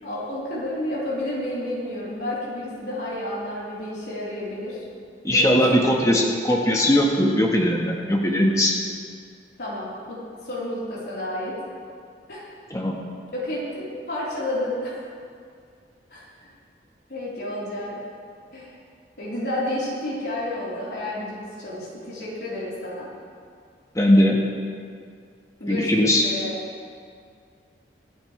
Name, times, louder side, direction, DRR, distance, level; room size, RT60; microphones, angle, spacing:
voice 1, 0.0-4.9 5.3-6.2 9.6-11.6 12.3-12.5 13.3-15.0 16.1-16.2 17.1-18.0 18.5-18.8 19.2-23.1 25.6-26.6, left 1 dB, 65° left, -8 dB, 4.0 m, -31 dB
voice 2, 5.2-8.8 12.7-13.0 23.9-24.4 25.7-26.2, left 1 dB, 20° left, -1 dB, 1.4 m, -19 dB
25.0 x 8.7 x 3.3 m, 2.2 s
head